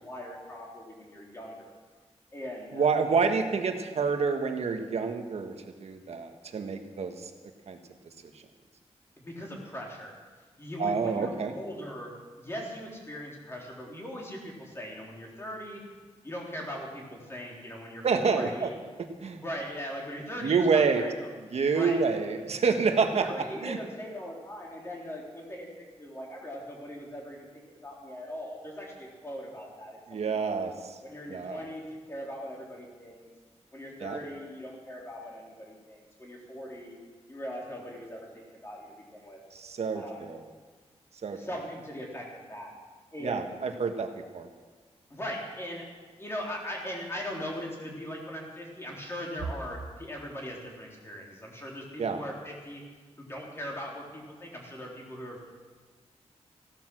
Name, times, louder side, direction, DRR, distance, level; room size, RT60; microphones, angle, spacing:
voice 1, 0.0-1.7 2.3-2.9 9.2-10.1 10.6-15.8 16.2-18.7 19.3-21.3 21.7-22.0 23.2-25.7 26.0-30.5 31.0-33.3 33.7-37.0 37.3-39.4 39.9-40.2 41.3-42.7 43.1-43.5 45.1-45.8 46.2-52.8 53.2-55.5, equal, 20° left, -2 dB, 3.9 m, -40 dB
voice 2, 2.7-5.5 5.8-7.3 7.7-7.8 10.8-11.5 18.0-18.7 19.0-19.4 20.4-21.0 21.4-23.8 30.1-31.0 31.3-31.6 34.0-34.2 39.5-40.4 41.2-41.4 43.2-44.5 52.0-52.2, right 5 dB, 70° right, 5 dB, 1.5 m, -28 dB
16.0 x 12.5 x 6.3 m, 1.4 s
wide cardioid pair, 115°, 11 cm